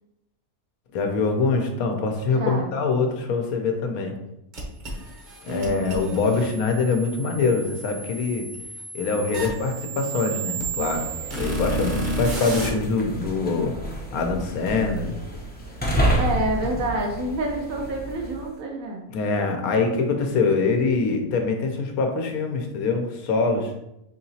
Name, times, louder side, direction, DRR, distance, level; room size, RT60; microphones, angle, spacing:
voice 1, 0.9-4.1 5.4-8.5 8.9-11.1 11.4-13.8 14.1-15.2 19.1-23.7, left 4 dB, 90° left, 4 dB, 1.1 m, -24 dB
voice 2, 2.2-2.7 5.5-6.4 16.2-19.0, right 1 dB, 75° right, 0 dB, 1.0 m, -28 dB
sound 1, 4.5-12.7, right 2 dB, 40° right, 0.8 m, -32 dB
sound 2, 10.7-18.5, right 1 dB, 15° left, 0.3 m, -30 dB
4.8 x 2.9 x 2.7 m, 0.88 s
omnidirectional pair, 1.5 m